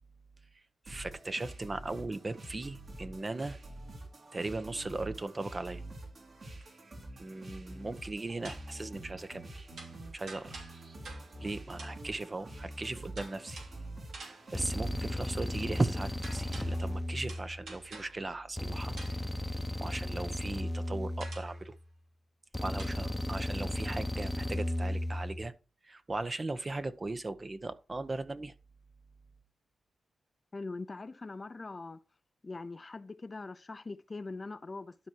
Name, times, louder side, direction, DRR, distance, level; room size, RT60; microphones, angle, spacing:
voice 1, 0.9-3.6 4.3-5.8 7.2-9.7 10.1-10.6 11.4-13.6 14.2-18.9 19.8-21.7 22.6-25.5 25.8-28.5, right 2 dB, 35° right, 0.9 m, -37 dB
sound 1, 0.9-17.0, right 1 dB, 60° right, 3.6 m, -46 dB
sound 2, 8.4-8.8 9.8-11.5 11.8-12.1 13.2-13.9 14.1-14.7 16.2-17.0 17.3-18.3 19.0-19.4 21.2-21.6 22.8-22.9, right 3 dB, 85° right, 3.0 m, -49 dB
sound 3, 13.5-13.8 14.5-17.8 18.6-21.8 22.5-25.5, left 1 dB, 10° left, 0.9 m, -35 dB
voice 2, 30.5-32.0 32.4-35.0, left 3 dB, 35° left, 0.6 m, -42 dB
12.0 x 4.7 x 4.6 m
cardioid pair, 60°, 0 cm